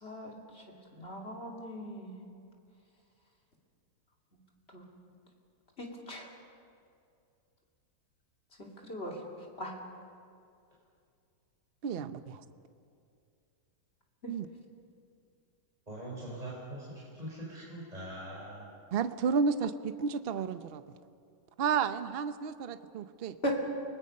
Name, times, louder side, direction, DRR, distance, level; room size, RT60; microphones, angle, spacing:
voice 1, 0.0-0.3 1.0-2.1 4.7-4.8 5.8-6.3 8.6-9.1 9.6-9.7 14.2-14.3 23.4-23.6, equal, 35° left, -1 dB, 3.0 m, -38 dB
voice 2, 11.8-12.4 14.3-14.5 18.9-20.8 21.6-23.4, right 6 dB, 50° right, 11 dB, 0.7 m, -31 dB
voice 3, 15.9-18.7, right 1 dB, 20° right, -5 dB, 4.3 m, -42 dB
29.5 x 20.0 x 5.5 m, 2.4 s
omnidirectional pair, 1.8 m